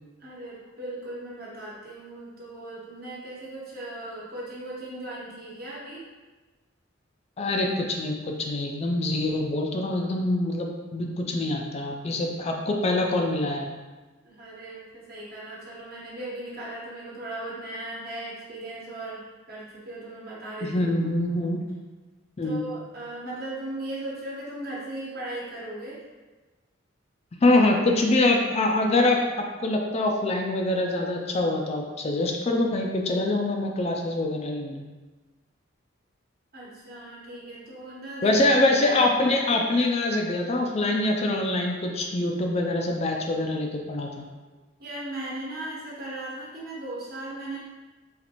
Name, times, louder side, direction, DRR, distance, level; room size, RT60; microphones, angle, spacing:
voice 1, 0.2-6.0 14.2-19.2 19.5-20.9 22.4-26.0 36.5-38.4 44.8-47.6, right 1 dB, 50° right, -6 dB, 1.1 m, -37 dB
voice 2, 7.4-13.7 20.6-21.6 22.4-22.6 27.4-34.8 38.2-44.2, left 2 dB, 30° left, 2 dB, 0.3 m, -24 dB
4.0 x 3.1 x 2.9 m, 1.2 s
head